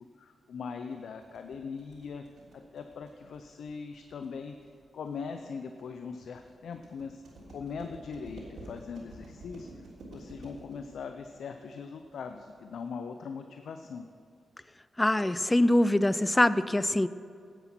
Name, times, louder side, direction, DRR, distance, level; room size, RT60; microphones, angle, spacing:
voice 1, 0.2-2.2 2.5-4.6 4.9-7.2 7.5-9.7 10.1-14.1, left 5 dB, 75° left, 7 dB, 0.5 m, -40 dB
sound 1, 0.9-12.9, right 1 dB, 70° right, 3.2 m, -50 dB
voice 2, 15.0-17.1, left 1 dB, 15° left, 15 dB, 0.4 m, -24 dB
10.5 x 8.0 x 5.9 m, 2.3 s
cardioid pair, 60°, 0 cm